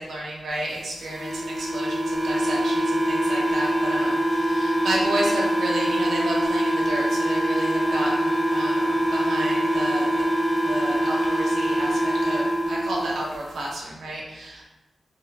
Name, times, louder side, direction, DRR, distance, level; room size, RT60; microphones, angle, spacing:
voice 1, 0.0-10.1 10.7-14.6, right 1 dB, 85° right, -3 dB, 0.5 m, -31 dB
sound 1, 1.0-13.1, right 1 dB, 25° left, 0.4 m, -24 dB
2.6 x 2.1 x 2.5 m, 1.0 s
wide cardioid pair, 175°, 0 cm